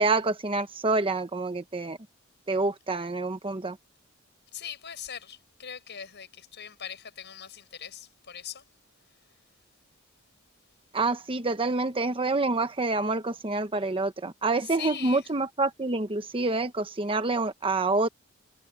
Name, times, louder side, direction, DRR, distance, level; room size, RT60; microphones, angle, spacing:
voice 1, 0.0-2.0 2.5-3.8 10.9-18.1, right 3 dB, 25° right, 1.0 m, -27 dB
voice 2, 4.5-8.6 14.6-15.3, left 8 dB, 55° left, 7.2 m, -41 dB
head